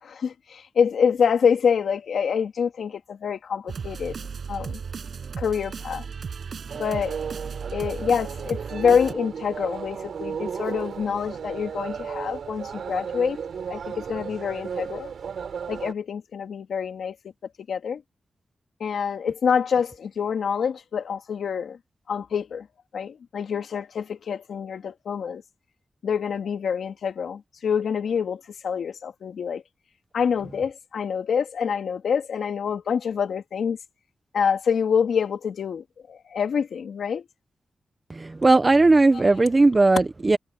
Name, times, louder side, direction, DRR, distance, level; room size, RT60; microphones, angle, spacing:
voice 1, 0.0-4.2 4.5-4.8 5.4-6.0 6.8-7.2 7.7-13.4 13.7-15.1 15.7-17.1 17.7-18.0 18.8-21.8 22.1-22.7 22.9-25.4 26.0-29.6 30.1-33.8 34.3-37.2, left 7 dB, 90° left, 3.0 m, -26 dB
sound 1, 3.7-9.1, right 6 dB, 65° right, 7.6 m, -35 dB
sound 2, 6.7-15.9, right 7 dB, 80° right, 6.6 m, -34 dB
voice 2, 38.1-40.4, right 3 dB, 30° right, 0.8 m, -18 dB
wide cardioid pair, 115°, 0 cm